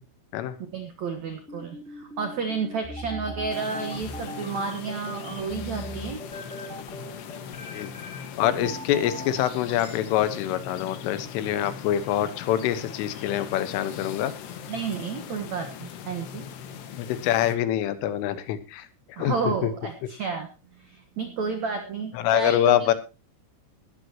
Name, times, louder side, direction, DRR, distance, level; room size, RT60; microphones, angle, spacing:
voice 1, 0.6-6.2 8.6-8.7 14.7-16.5 19.2-20.5 20.8-22.9, right 5 dB, 85° right, 6 dB, 1.5 m, -31 dB
sound 1, 1.5-9.9, equal, ahead, 2.4 m, -39 dB
sound 2, 3.5-17.6, left 8 dB, 65° left, 3.5 m, -40 dB
voice 2, 8.4-14.3 17.0-18.9 19.2-19.7 22.2-22.9, left 11 dB, 85° left, 12 dB, 3.8 m, -25 dB
19.0 x 13.0 x 2.9 m, 0.29 s
omnidirectional pair, 5.7 m